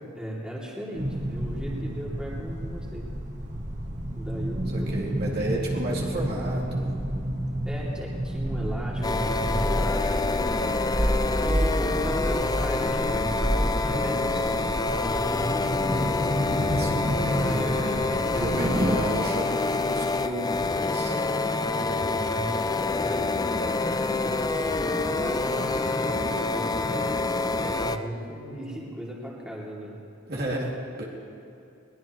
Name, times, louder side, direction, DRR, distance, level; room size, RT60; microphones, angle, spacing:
voice 1, 0.1-3.1 4.1-5.0 7.6-10.9 11.3-14.6 15.0-15.8 17.3-19.2 22.2-22.5 23.0-24.5 24.8-26.9 27.6-30.0, equal, 5° right, -5 dB, 2.7 m, -37 dB
sound 1, 0.9-19.0, equal, 35° right, 1.4 m, -30 dB
voice 2, 4.7-6.9 16.5-17.8 18.4-21.2 21.7-22.1 30.3-31.0, right 1 dB, 55° right, -4 dB, 2.5 m, -33 dB
sound 2, 9.0-28.0, left 3 dB, 20° left, 0.4 m, -27 dB
21.5 x 19.5 x 3.1 m, 2.7 s
head